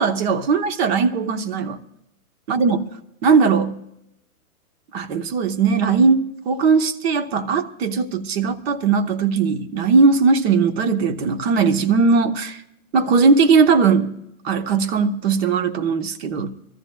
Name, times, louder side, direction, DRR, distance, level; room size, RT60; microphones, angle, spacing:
voice 1, 0.0-1.8 2.5-2.8 3.2-3.8 4.9-12.6 12.9-14.1 14.4-16.5, right 5 dB, 45° right, 1.2 m, -19 dB
26.5 x 14.0 x 2.3 m
hypercardioid pair, 150°, 44 cm